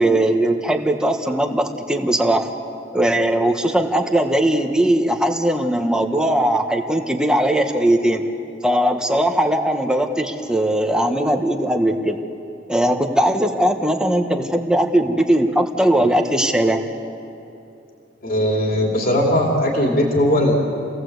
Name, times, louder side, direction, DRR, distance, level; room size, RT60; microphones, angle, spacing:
voice 1, 0.0-2.5 2.9-8.2 8.6-12.2 12.7-16.8, right 1 dB, 5° right, 4 dB, 1.3 m, -19 dB
voice 2, 18.2-20.5, left 1 dB, 50° left, 0 dB, 3.0 m, -18 dB
29.0 x 17.5 x 8.0 m, 2.7 s
head